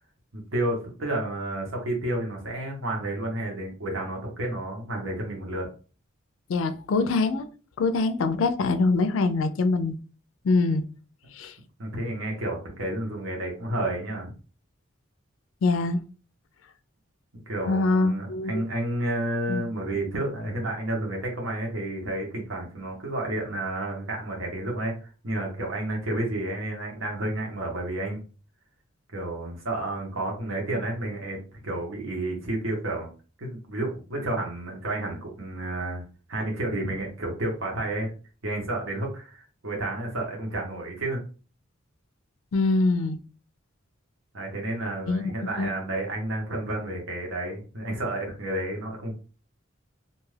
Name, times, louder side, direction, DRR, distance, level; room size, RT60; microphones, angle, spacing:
voice 1, 0.3-5.7 11.8-14.3 17.3-24.9 25.2-28.2 29.1-33.1 33.4-36.0 36.3-38.1 38.4-41.2 44.3-49.1, right 1 dB, 80° right, 1.0 m, -31 dB
voice 2, 6.5-7.5 7.8-9.9 10.4-10.8 11.3-11.6 15.6-16.0 17.7-18.6 19.5-19.6 42.5-43.2 45.1-45.7, left 3 dB, 80° left, 0.4 m, -24 dB
2.5 x 2.3 x 3.2 m
head